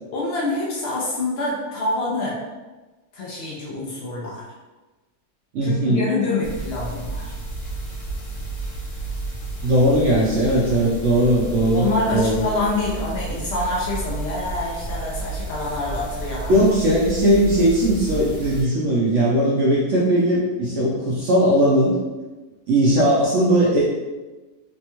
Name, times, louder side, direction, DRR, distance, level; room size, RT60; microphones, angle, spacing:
voice 1, 0.1-2.4 3.1-4.5 5.6-7.3 11.7-16.6, left 2 dB, 90° left, -4 dB, 0.5 m, -26 dB
voice 2, 5.5-6.1 9.6-12.4 16.5-21.9 22.7-23.9, right 1 dB, 70° right, -5 dB, 0.7 m, -18 dB
sound 1, 6.4-18.6, right 3 dB, 60° left, 0.9 m, -32 dB
3.3 x 2.2 x 2.9 m, 1.2 s
omnidirectional pair, 1.8 m